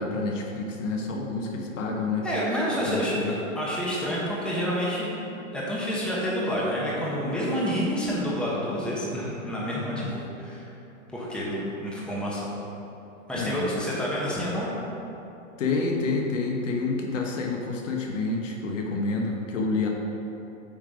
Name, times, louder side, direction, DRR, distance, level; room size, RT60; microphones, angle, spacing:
voice 1, 0.0-2.3 2.8-3.3 13.3-13.7 15.6-19.9, left 3 dB, 70° left, 1 dB, 1.2 m, -28 dB
voice 2, 2.2-5.2 5.5-10.7 11.1-12.5 13.3-14.7, equal, ahead, -6 dB, 1.2 m, -29 dB
8.5 x 3.8 x 4.9 m, 2.9 s
hypercardioid pair, 130°, 40 cm